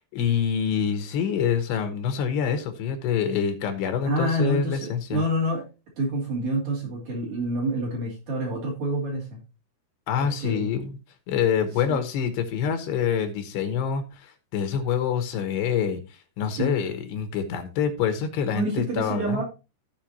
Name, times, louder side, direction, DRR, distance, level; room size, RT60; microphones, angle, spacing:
voice 1, 0.0-5.2 10.1-10.9 11.3-19.4, left 7 dB, 75° left, 7 dB, 3.2 m, -26 dB
voice 2, 4.1-5.6 6.0-9.4 10.2-10.6 11.9-12.0 16.6-16.8 18.5-19.4, right 1 dB, 45° right, -2 dB, 3.8 m, -27 dB
16.0 x 5.5 x 2.9 m, 0.29 s
omnidirectional pair, 4.9 m